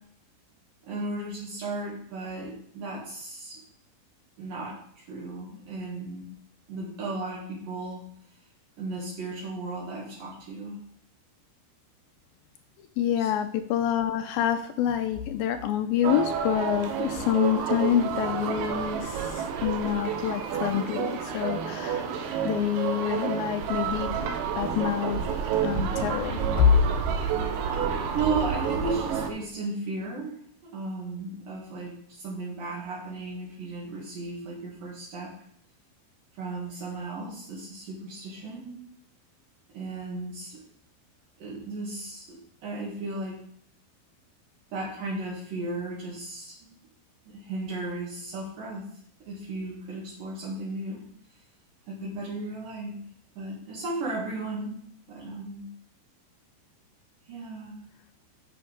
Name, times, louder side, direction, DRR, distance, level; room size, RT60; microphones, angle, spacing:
voice 1, 0.8-3.6 4.4-6.3 6.7-8.0 8.8-10.8 13.2-13.3 28.1-35.3 36.4-38.8 39.7-40.6 41.4-43.4 44.7-46.6 47.3-48.8 49.2-51.0 51.9-53.0 53.4-55.6 57.3-57.8, right 3 dB, 65° right, -4 dB, 3.5 m, -35 dB
voice 2, 13.0-22.1 22.4-24.1 24.6-25.2 25.6-26.7, left 10 dB, 80° left, 8 dB, 2.3 m, -26 dB
sound 1, 16.0-29.3, right 7 dB, 90° right, 3.1 m, -29 dB
9.9 x 6.8 x 5.1 m, 0.65 s
omnidirectional pair, 4.4 m